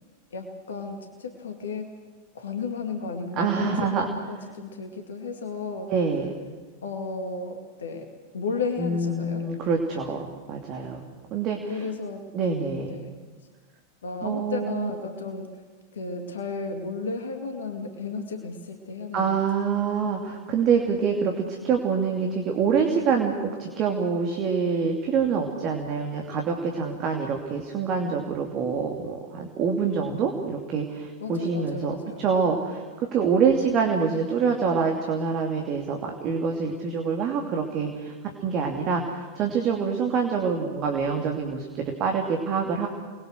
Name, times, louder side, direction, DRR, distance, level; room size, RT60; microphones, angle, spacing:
voice 1, 0.3-1.9 2.3-5.9 6.8-8.1 8.3-9.5 11.7-13.1 14.0-15.6 15.9-19.4 31.2-32.3, left 4 dB, 65° left, 4 dB, 2.4 m, -34 dB
voice 2, 3.4-4.1 5.9-6.3 8.8-10.2 10.5-11.0 11.3-11.8 12.3-12.9 14.2-14.9 19.1-32.8 33.1-38.1 38.4-42.9, right 5 dB, 35° right, 2 dB, 2.8 m, -26 dB
29.5 x 21.0 x 6.6 m, 1.5 s
figure-of-eight pair, 90°, 0 cm